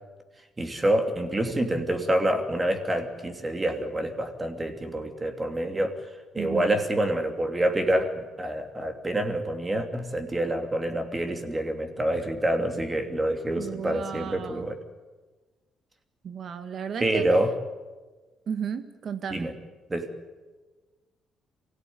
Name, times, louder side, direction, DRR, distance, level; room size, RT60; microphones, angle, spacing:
voice 1, 0.6-6.0 6.3-14.8 17.0-17.5 19.3-19.5 19.9-20.1, right 1 dB, 20° right, 6 dB, 2.8 m, -27 dB
voice 2, 6.4-6.7 13.6-14.7 16.2-17.3 18.5-19.5, right 7 dB, 55° right, 10 dB, 1.8 m, -34 dB
24.0 x 16.5 x 9.6 m, 1.3 s
cardioid pair, 90°, 0 cm